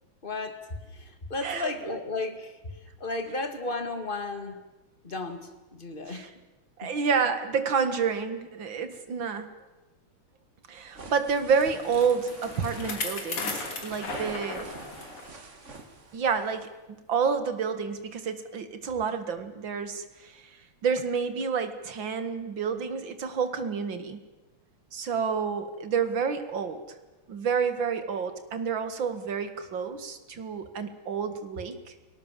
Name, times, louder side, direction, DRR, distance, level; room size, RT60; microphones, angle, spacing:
voice 1, 0.2-0.6 0.9-2.6 3.0-4.6 5.0-6.3 6.8-7.0, left 3 dB, 25° left, 8 dB, 2.2 m, -34 dB
voice 2, 1.4-2.0 6.1-6.3 6.8-9.5 10.7-14.7 16.1-24.2 24.9-26.8 27.3-31.9, right 6 dB, 60° right, 10 dB, 2.6 m, -29 dB
sound 1, 10.7-16.6, right 3 dB, 35° right, 2.2 m, -46 dB
Bicycle, 11.4-15.3 15.7-15.8 16.6-16.7, left 4 dB, 85° left, 4.1 m, -36 dB
29.5 x 18.5 x 7.5 m, 1.2 s
omnidirectional pair, 2.4 m